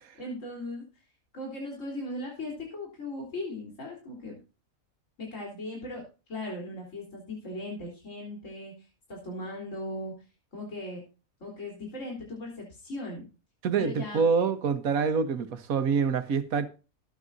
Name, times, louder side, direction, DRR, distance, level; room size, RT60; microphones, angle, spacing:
voice 1, 0.1-0.9 1.3-4.4 5.2-6.0 6.3-10.1 10.5-11.0 11.4-13.2 13.8-14.3, left 1 dB, 60° left, 4.1 m, -38 dB
voice 2, 13.6-16.7, right 5 dB, 85° right, 1.6 m, -26 dB
19.5 x 8.9 x 2.6 m
omnidirectional pair, 1.5 m